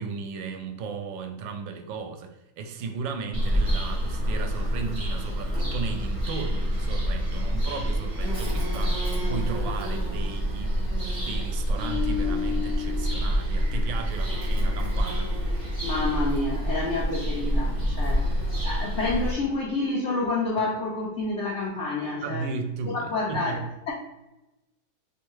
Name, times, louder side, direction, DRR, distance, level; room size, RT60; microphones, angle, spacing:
voice 1, 0.0-15.3 22.2-23.7, right 5 dB, 85° right, 5 dB, 1.3 m, -35 dB
Bird vocalization bird call bird song, 3.3-19.3, equal, 20° right, 1.0 m, -27 dB
sound 1, 11.7-15.0 15.3-15.6, left 8 dB, 60° right, 1.1 m, -35 dB
voice 2, 15.8-18.3 18.6-22.5 22.9-23.6, left 2 dB, 75° left, -3 dB, 0.6 m, -28 dB
3.5 x 3.3 x 3.0 m, 0.97 s
omnidirectional pair, 2.0 m